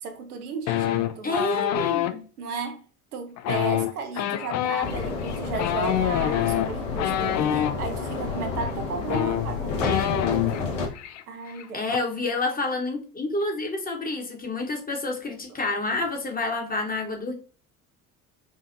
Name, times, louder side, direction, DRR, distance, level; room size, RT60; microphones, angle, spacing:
voice 1, 0.0-1.8 2.4-2.8 3.1-9.8 11.3-11.8, right 5 dB, 80° right, 0.9 m, -34 dB
sound 1, 0.7-2.1 3.4-7.7 8.7-8.8 9.0-10.7 11.0-11.2 11.5-12.0, left 12 dB, 40° left, 0.5 m, -26 dB
voice 2, 1.2-2.2 9.8-10.1 11.5-17.3, left 2 dB, 20° left, 1.1 m, -29 dB
sound 2, 4.8-10.9, left 4 dB, 60° left, 1.3 m, -30 dB
4.9 x 2.5 x 2.6 m
hypercardioid pair, 65°, 45 cm